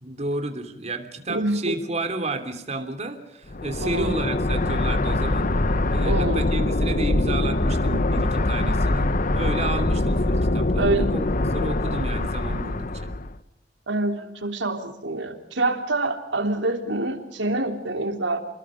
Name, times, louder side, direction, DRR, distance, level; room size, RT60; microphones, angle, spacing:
voice 1, 0.0-5.5 5.9-9.1 9.3-11.3 11.5-13.1, right 2 dB, 40° right, 7 dB, 3.0 m, -31 dB
voice 2, 1.3-1.8 3.8-4.1 6.0-6.4 10.8-11.1 13.9-18.4, right 2 dB, 90° right, 5 dB, 3.3 m, -26 dB
sound 1, 3.5-13.4, left 2 dB, 50° left, 1.0 m, -23 dB
29.5 x 21.5 x 5.2 m, 0.85 s
head